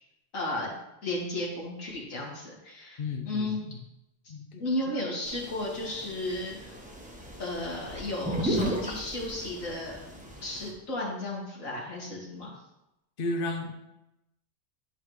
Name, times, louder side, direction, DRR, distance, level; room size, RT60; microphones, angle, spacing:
voice 1, 0.3-0.7 1.0-3.6 4.6-6.7 7.4-10.0 10.4-12.5, left 1 dB, 80° left, -4 dB, 2.4 m, -34 dB
voice 2, 3.0-3.7 4.3-4.9 13.2-13.7, left 2 dB, 50° left, 3 dB, 0.9 m, -34 dB
sound 1, 5.3-10.7, equal, 5° right, 0.9 m, -36 dB
10.5 x 4.8 x 3.2 m, 0.88 s
omnidirectional pair, 1.3 m